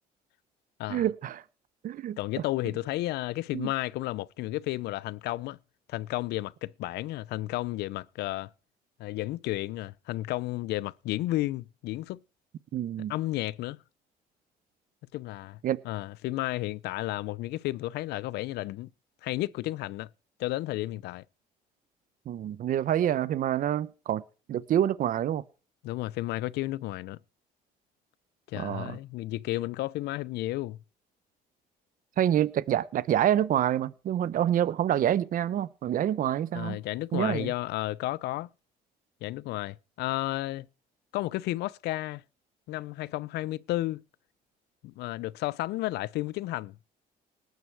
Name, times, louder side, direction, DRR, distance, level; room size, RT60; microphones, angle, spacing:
voice 1, 0.9-1.4 1.8-2.2 3.5-3.7 12.7-13.1 15.6-15.8 22.3-24.2 24.5-25.4 28.5-29.0 32.2-36.8 37.1-37.5, right 11 dB, 55° right, 0.9 m, -27 dB
voice 2, 2.2-5.6 5.9-8.5 9.0-12.2 13.1-13.8 15.1-15.6 15.8-18.9 19.2-20.1 20.4-21.2 25.8-27.2 28.5-30.8 36.5-38.5 39.2-40.7 41.1-42.2 42.7-44.0 44.8-46.8, left 17 dB, 80° left, 0.5 m, -32 dB
19.0 x 9.3 x 4.6 m
cardioid pair, 110°, 17 cm